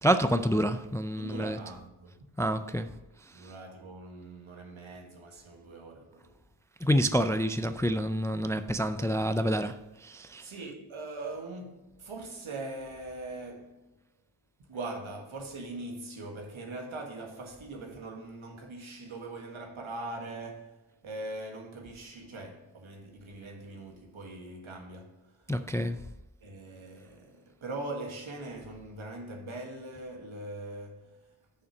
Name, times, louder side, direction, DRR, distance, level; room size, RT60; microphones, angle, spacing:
voice 1, 0.0-1.6 2.4-2.9 6.8-9.8 10.0-10.4 25.5-26.0, equal, 5° left, 0.4 m, -27 dB
voice 2, 1.2-2.3 3.3-6.3 10.4-13.8 14.7-20.8 21.0-25.4 26.4-31.1, right 2 dB, 75° right, 1.7 m, -41 dB
6.8 x 5.7 x 6.0 m
cardioid pair, 60°, 49 cm